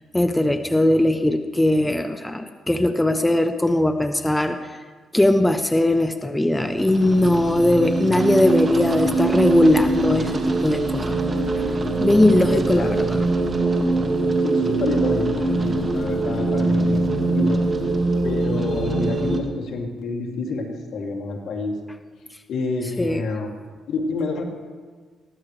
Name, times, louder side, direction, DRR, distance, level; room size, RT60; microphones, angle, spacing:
voice 1, 0.1-4.8 5.1-11.2 12.0-13.2 23.0-23.2, left 1 dB, 10° left, 8 dB, 0.7 m, -19 dB
sound 1, 6.6-19.4, right 2 dB, 35° right, 1.9 m, -23 dB
voice 2, 12.5-13.1 14.4-17.6 18.2-21.8 22.5-23.5 23.9-24.4, left 3 dB, 70° left, 0 dB, 2.6 m, -28 dB
21.0 x 15.5 x 3.3 m, 1.5 s
cardioid pair, 90°, 0 cm